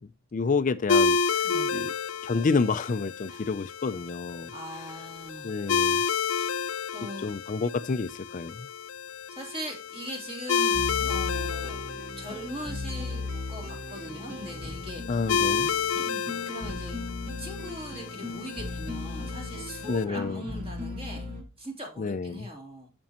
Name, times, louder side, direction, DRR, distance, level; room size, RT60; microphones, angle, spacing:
voice 1, 0.3-1.9 2.2-4.5 5.4-6.0 7.2-8.7 15.1-15.7 19.9-20.4 22.0-22.5, left 4 dB, 40° left, 0.4 m, -29 dB
sound 1, 0.9-20.0, left 6 dB, 85° left, 0.6 m, -31 dB
voice 2, 1.4-1.9 3.3-3.4 4.5-5.5 6.3-6.6 6.9-7.3 9.3-10.7 11.1-11.8 12.2-13.2 13.5-15.3 16.0-17.0 17.4-22.9, equal, 30° right, 3.2 m, -40 dB
sound 2, 10.7-21.4, left 2 dB, 45° right, 2.3 m, -37 dB
14.5 x 5.2 x 2.9 m
head